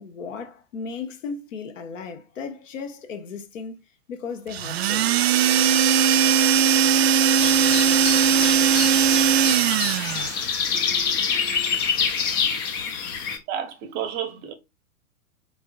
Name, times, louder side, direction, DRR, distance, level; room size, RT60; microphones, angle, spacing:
voice 1, 0.0-3.8 4.1-5.1, left 5 dB, 60° left, 1.2 m, -35 dB
sound 1, 4.5-10.4, right 8 dB, 50° right, 0.4 m, -19 dB
sound 2, 4.8-5.8 7.7-8.8 10.7-11.8, equal, 85° right, 0.8 m, -45 dB
sound 3, 7.4-13.4, left 6 dB, 15° left, 0.4 m, -26 dB
voice 2, 13.5-14.5, right 9 dB, 25° right, 0.8 m, -31 dB
4.6 x 4.2 x 2.3 m
figure-of-eight pair, 110°, 43 cm